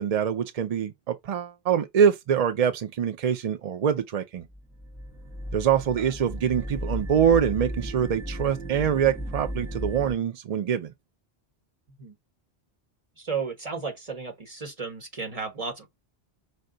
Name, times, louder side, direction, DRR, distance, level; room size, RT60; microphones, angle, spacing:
voice 1, 0.0-4.4 5.5-10.9, right 8 dB, 60° right, 0.4 m, -24 dB
sound 1, 4.5-10.2, equal, ahead, 0.8 m, -35 dB
voice 2, 13.2-15.9, right 5 dB, 35° right, 1.3 m, -34 dB
5.3 x 2.2 x 3.8 m
omnidirectional pair, 1.1 m